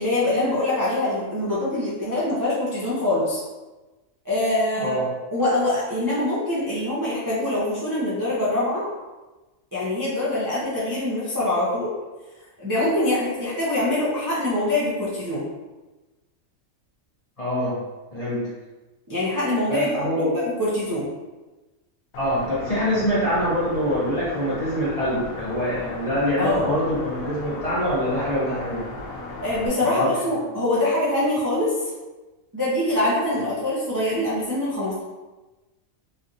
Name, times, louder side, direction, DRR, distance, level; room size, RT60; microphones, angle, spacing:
voice 1, 0.0-3.4 4.2-5.0 5.3-8.8 9.7-11.9 12.6-15.4 19.1-21.1 26.4-26.7 29.4-31.9 32.5-35.0, left 1 dB, 20° right, -9 dB, 0.5 m, -24 dB
voice 2, 4.8-5.1 17.4-17.8 18.1-18.5 19.7-20.3 22.2-28.8 29.8-30.1, equal, 35° left, -10 dB, 0.7 m, -24 dB
sound 1, 22.1-29.7, left 2 dB, 90° left, 1.1 m, -36 dB
3.3 x 2.7 x 2.5 m, 1.1 s
omnidirectional pair, 1.4 m